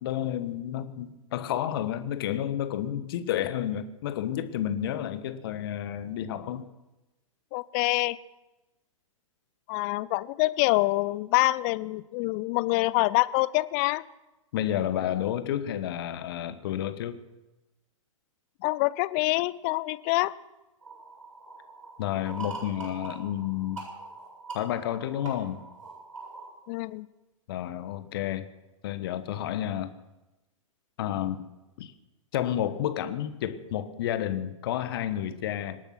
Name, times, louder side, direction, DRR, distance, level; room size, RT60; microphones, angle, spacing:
voice 1, 0.0-6.7 14.5-17.2 22.0-23.8 24.5-25.6 27.5-28.4 28.8-30.0 31.0-31.4 31.8-31.9 32.3-35.8, left 11 dB, 45° left, 11 dB, 1.3 m, -30 dB
voice 2, 7.5-8.2 9.7-14.0 18.6-20.3 26.7-27.1, left 21 dB, 30° left, 18 dB, 0.5 m, -26 dB
sound 1, 20.8-26.5, right 3 dB, 70° right, 7.2 m, -43 dB
26.0 x 8.7 x 6.0 m, 1.0 s
figure-of-eight pair, 110°, 17 cm